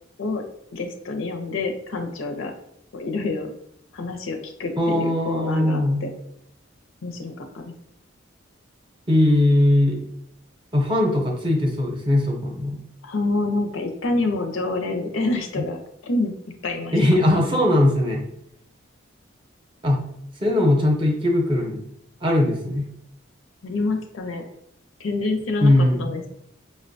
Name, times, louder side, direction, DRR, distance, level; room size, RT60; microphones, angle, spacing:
voice 1, 0.7-2.5 2.9-3.5 3.9-6.1 7.0-7.6 13.0-16.3 16.6-17.0 23.6-24.4 25.0-26.3, left 2 dB, 85° left, 5 dB, 0.6 m, -27 dB
voice 2, 4.8-6.0 9.1-10.0 10.7-12.8 16.9-18.2 19.8-20.0 20.4-21.8 22.2-22.9 25.6-26.1, left 1 dB, 25° right, 1 dB, 0.6 m, -20 dB
4.9 x 2.1 x 2.6 m, 0.73 s
head